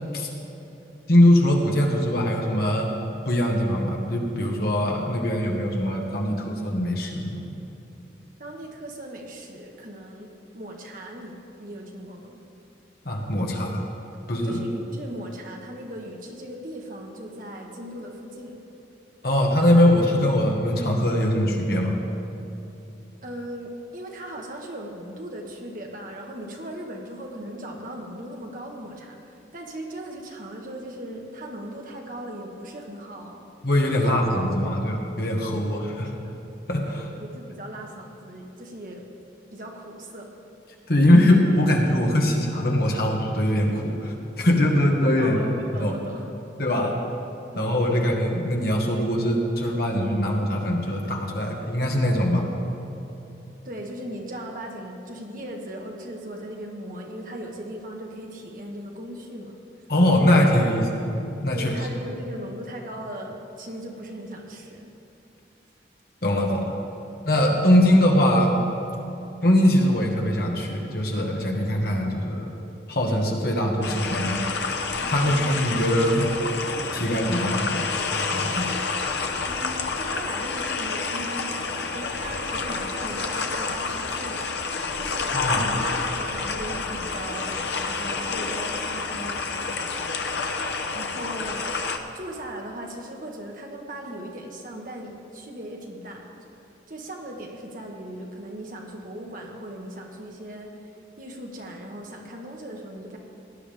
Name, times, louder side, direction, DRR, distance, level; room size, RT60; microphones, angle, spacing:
voice 1, 1.1-2.9 3.2-7.5 13.0-13.8 14.3-14.6 19.2-22.0 33.6-36.1 36.7-37.1 40.9-45.4 45.8-45.9 46.6-46.9 47.5-52.5 59.9-60.8 61.4-61.7 66.2-66.7 67.2-68.5 69.4-72.5 72.9-74.7 75.1-76.3 76.9-78.7 85.3-85.7, left 1 dB, 55° left, 0 dB, 1.7 m, -22 dB
voice 2, 8.4-12.4 14.4-18.5 23.2-33.4 33.9-34.7 35.7-36.3 37.1-39.0 39.5-40.3 45.2-46.3 47.5-48.0 53.6-59.5 60.8-60.9 61.5-64.9 75.0-75.3 79.4-84.5 84.9-90.1 90.9-91.7 92.1-96.2 96.9-100.7 101.2-103.2, right 1 dB, 50° right, 0 dB, 1.5 m, -38 dB
sound 1, 73.8-92.0, left 4 dB, 75° left, 0.8 m, -29 dB
18.0 x 11.0 x 3.6 m, 3.0 s
head